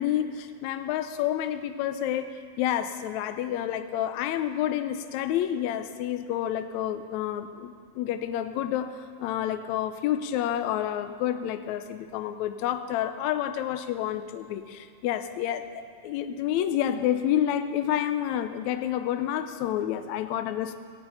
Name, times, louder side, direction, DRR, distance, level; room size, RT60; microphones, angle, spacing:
voice 1, 0.0-20.8, left 11 dB, 85° left, 9 dB, 1.6 m, -29 dB
17.0 x 6.9 x 9.1 m, 2.1 s
omnidirectional pair, 4.0 m